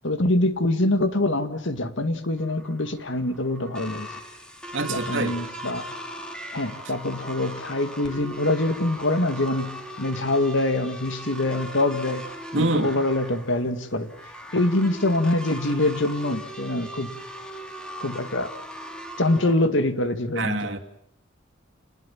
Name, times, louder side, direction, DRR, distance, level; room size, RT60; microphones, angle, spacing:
voice 1, 0.0-4.1 4.8-5.9 6.5-14.1 14.5-17.2 18.0-18.5 19.2-20.6, left 2 dB, 65° left, 9 dB, 2.1 m, -24 dB
sound 1, 2.4-19.5, equal, 5° left, 2.9 m, -39 dB
voice 2, 4.7-5.4 12.5-12.9 20.4-20.8, right 2 dB, 65° right, 5 dB, 2.6 m, -25 dB
28.5 x 20.0 x 7.4 m, 0.70 s
head